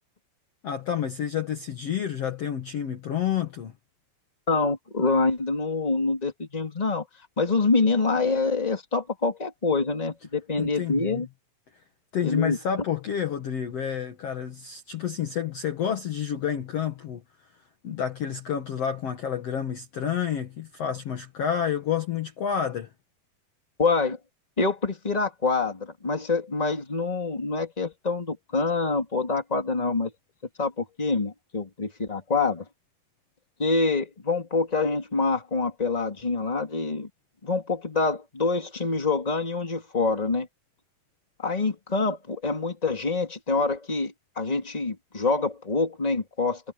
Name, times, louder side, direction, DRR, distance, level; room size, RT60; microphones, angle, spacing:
voice 1, 0.6-3.7 10.6-11.3 12.1-17.2 17.8-22.9, left 8 dB, 50° left, 2.2 m, -29 dB
voice 2, 4.5-7.0 7.4-11.3 12.2-12.6 23.8-24.2 24.6-30.1 30.6-32.6 33.6-37.1 37.4-40.5 41.4-46.6, left 3 dB, 10° left, 2.8 m, -26 dB
omnidirectional pair, 4.1 m